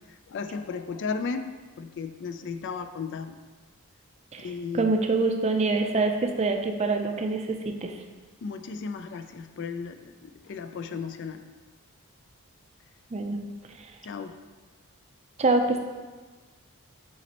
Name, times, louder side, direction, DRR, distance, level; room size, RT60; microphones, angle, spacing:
voice 1, 0.3-1.5 1.8-3.4 4.4-5.0 8.4-11.4 14.0-14.4, left 5 dB, 55° left, 9 dB, 0.3 m, -35 dB
voice 2, 4.3-7.9 13.1-13.4 13.8-13.9 15.4-15.9, right 3 dB, 30° right, 5 dB, 0.4 m, -25 dB
8.2 x 4.1 x 2.9 m, 1.4 s
head